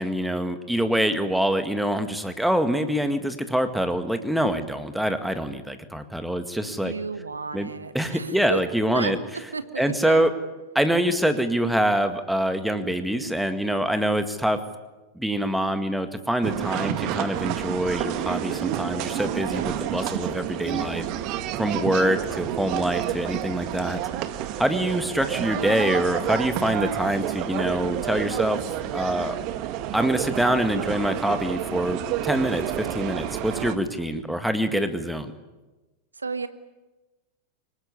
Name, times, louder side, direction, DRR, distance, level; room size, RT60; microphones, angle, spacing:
voice 1, 0.0-6.9 7.5-7.7 7.9-9.2 9.8-10.3 10.8-14.6 15.2-21.1 21.6-24.0 24.6-28.6 28.9-29.4 29.9-35.3, equal, ahead, 8 dB, 1.9 m, -25 dB
voice 2, 6.8-8.6 8.9-9.1 9.5-10.3 19.5-20.1 21.7-21.9 36.1-36.5, right 4 dB, 75° right, 11 dB, 1.5 m, -33 dB
sound 1, 16.4-33.8, right 11 dB, 40° right, 1.8 m, -29 dB
25.0 x 21.0 x 9.9 m, 1.2 s
figure-of-eight pair, 90°, 0 cm